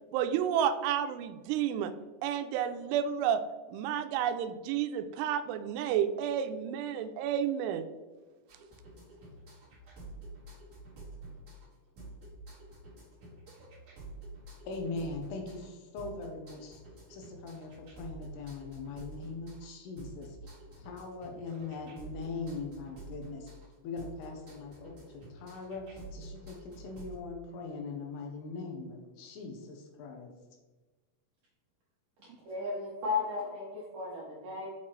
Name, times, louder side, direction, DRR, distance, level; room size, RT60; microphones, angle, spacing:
voice 1, 0.1-1.9 2.2-3.4 3.7-7.9, right 9 dB, 85° right, 9 dB, 2.6 m, -31 dB
sound 1, 8.5-27.2, right 2 dB, 45° right, 1.7 m, -49 dB
voice 2, 14.7-16.8 17.1-17.7 18.0-20.4 20.7-23.5 23.8-24.9 25.3-30.3, left 3 dB, 85° left, 2 dB, 2.9 m, -41 dB
voice 3, 32.2-34.7, left 4 dB, 65° right, -5 dB, 2.2 m, -35 dB
6.5 x 5.8 x 3.1 m, 1.3 s
omnidirectional pair, 4.7 m